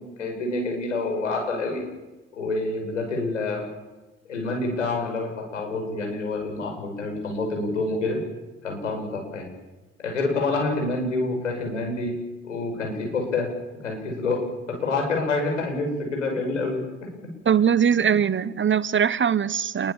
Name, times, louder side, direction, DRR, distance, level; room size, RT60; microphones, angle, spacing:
voice 1, 0.0-1.8 2.3-3.7 4.3-8.2 8.6-9.5 10.0-12.1 12.4-13.5 13.8-16.8 17.5-17.6, left 3 dB, 85° left, 2 dB, 6.6 m, -27 dB
voice 2, 17.4-19.9, right 8 dB, 30° right, 18 dB, 1.2 m, -21 dB
28.0 x 21.5 x 7.4 m, 1.1 s
figure-of-eight pair, 50°, 36 cm